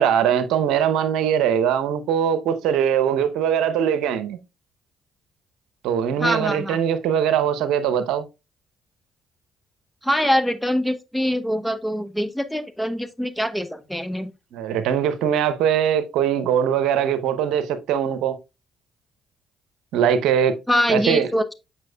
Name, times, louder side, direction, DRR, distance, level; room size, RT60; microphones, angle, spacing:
voice 1, 0.0-4.4 5.8-8.2 14.5-18.4 19.9-20.6 20.9-21.3, right 9 dB, 80° right, 0.7 m, -21 dB
voice 2, 6.2-6.8 10.0-14.3 20.7-21.5, equal, ahead, 1.0 m, -23 dB
7.5 x 5.6 x 2.2 m
hypercardioid pair, 55°, 0 cm